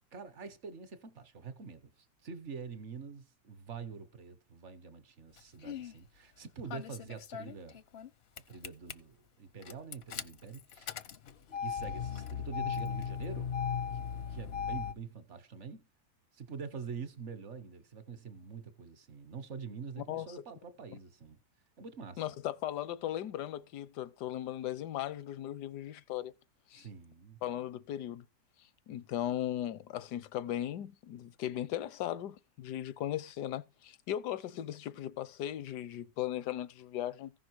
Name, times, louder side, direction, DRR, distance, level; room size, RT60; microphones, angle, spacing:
voice 1, 0.1-7.8 8.5-10.9 11.6-13.5 13.9-15.8 16.3-21.4 21.8-22.2 26.7-27.4, right 6 dB, 50° right, 1.1 m, -45 dB
Engine starting, 5.4-5.9 6.7-8.1 8.4-8.9 9.6-14.9, left 7 dB, 55° left, 0.7 m, -37 dB
voice 2, 22.2-26.3 26.7-26.9 27.4-28.2 28.9-37.3, left 12 dB, 80° left, 1.3 m, -37 dB
15.0 x 6.0 x 4.6 m
omnidirectional pair, 1.8 m